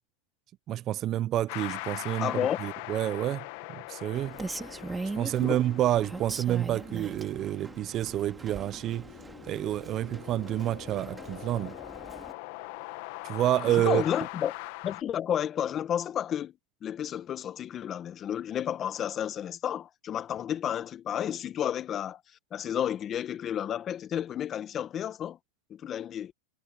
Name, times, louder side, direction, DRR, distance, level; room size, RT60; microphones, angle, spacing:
voice 1, 0.7-2.3 2.6-4.4 5.2-9.1 9.4-11.8 13.2-14.0, right 13 dB, 35° right, 0.5 m, -28 dB
sound 1, 1.5-15.0, left 23 dB, 55° left, 1.4 m, -42 dB
voice 2, 2.2-2.6 5.4-5.6 13.7-14.5 14.8-16.5 16.8-22.2 22.5-25.4 25.7-26.3, left 10 dB, 30° left, 1.5 m, -31 dB
Rain, 4.1-12.3, right 3 dB, 10° right, 2.1 m, -41 dB
hypercardioid pair, 125°, 0 cm